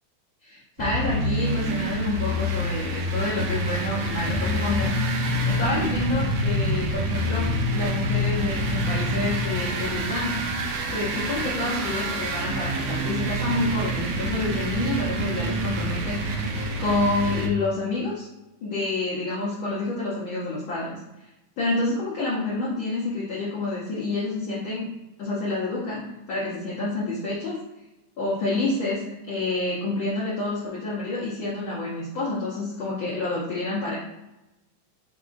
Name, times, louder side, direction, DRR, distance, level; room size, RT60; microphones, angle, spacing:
voice 1, 0.4-4.9 5.5-10.4 10.9-16.5 16.8-18.3 18.6-21.0 21.6-24.9 25.2-27.6 28.2-34.0, left 2 dB, 85° left, -7 dB, 1.1 m, -28 dB
sound 1, 0.8-17.5, right 2 dB, 80° right, 1.5 m, -28 dB
sound 2, 4.2-9.6, left 4 dB, 45° right, 1.3 m, -27 dB
4.7 x 3.8 x 2.4 m, 0.97 s
omnidirectional pair, 3.4 m